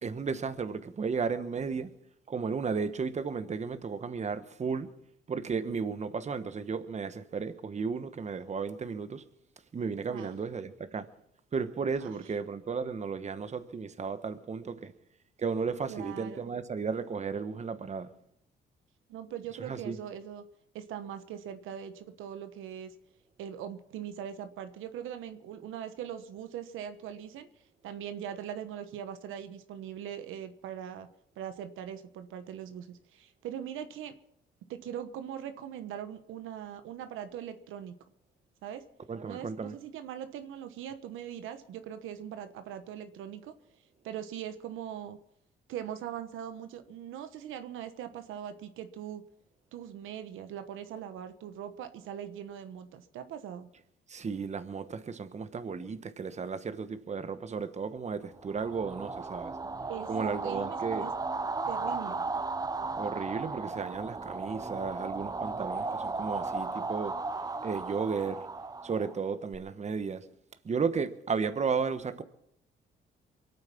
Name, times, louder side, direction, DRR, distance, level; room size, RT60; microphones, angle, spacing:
voice 1, 0.0-1.9 2.3-4.9 5.3-9.2 9.7-11.1 11.5-14.9 15.4-18.1 19.6-20.0 39.1-39.7 54.1-59.5 60.1-61.1 62.9-67.1 67.6-68.4 68.8-70.2 70.6-72.2, right 5 dB, 35° right, 1.1 m, -34 dB
voice 2, 10.1-10.4 12.0-12.1 15.9-16.5 19.1-20.4 20.7-22.9 23.4-27.5 27.8-31.1 31.4-34.2 34.7-38.0 38.6-38.8 39.2-43.5 44.0-45.2 45.7-49.2 49.7-53.7 59.9-61.1 61.7-62.3, right 9 dB, 85° right, 1.1 m, -41 dB
sound 1, 58.4-69.6, right 3 dB, 20° right, 0.7 m, -35 dB
23.5 x 8.9 x 5.9 m
cardioid pair, 90°, 20 cm